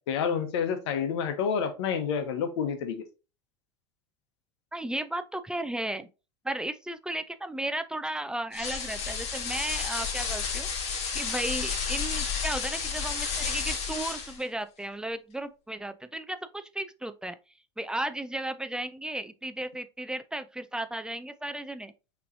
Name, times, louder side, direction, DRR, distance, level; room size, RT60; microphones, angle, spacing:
voice 1, 0.0-3.0, left 7 dB, 85° left, 1.0 m, -29 dB
voice 2, 4.7-6.1 6.4-10.7 11.1-17.4 17.8-21.9, right 1 dB, 5° right, 0.4 m, -34 dB
sound 1, 8.5-14.4, left 6 dB, 50° left, 2.0 m, -31 dB
5.8 x 3.1 x 2.7 m
supercardioid pair, 110°, 14 cm